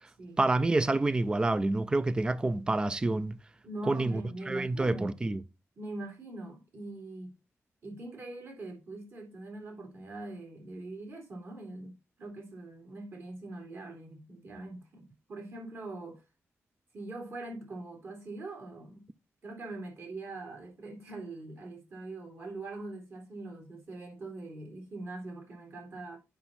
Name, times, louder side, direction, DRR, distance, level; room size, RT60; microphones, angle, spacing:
voice 1, 0.4-3.4 3.9-4.2 4.5-5.4, right 2 dB, 15° right, 0.4 m, -28 dB
voice 2, 3.6-5.2 5.8-7.3 7.8-11.9 12.2-16.2 16.9-19.0 19.4-26.2, right 2 dB, 50° right, 3.4 m, -42 dB
7.6 x 5.7 x 4.2 m
wide cardioid pair, 160°, 5 cm